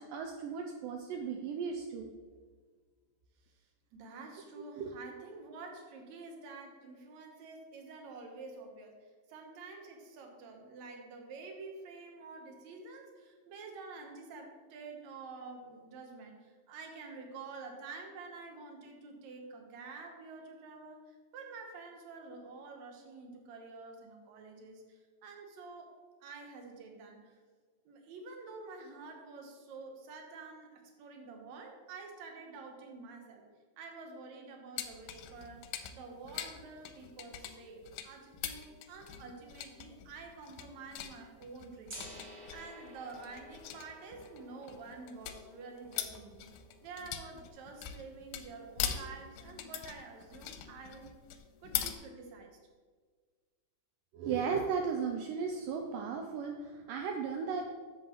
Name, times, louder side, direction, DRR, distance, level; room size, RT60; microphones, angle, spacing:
voice 1, 0.0-2.1 4.8-4.9 54.1-57.7, right 6 dB, 85° right, 3 dB, 2.0 m, -35 dB
voice 2, 3.9-9.0 9.3-26.0 26.2-27.4 27.9-33.4 33.8-35.7 35.9-46.5 46.8-51.1 51.6-52.6, right 4 dB, 65° right, 2 dB, 1.9 m, -48 dB
sound 1, 34.8-51.9, left 10 dB, 85° left, 2.4 m, -42 dB
Gong, 41.9-47.8, right 1 dB, 35° right, 2.0 m, -53 dB
11.0 x 7.3 x 3.1 m, 1.5 s
omnidirectional pair, 4.6 m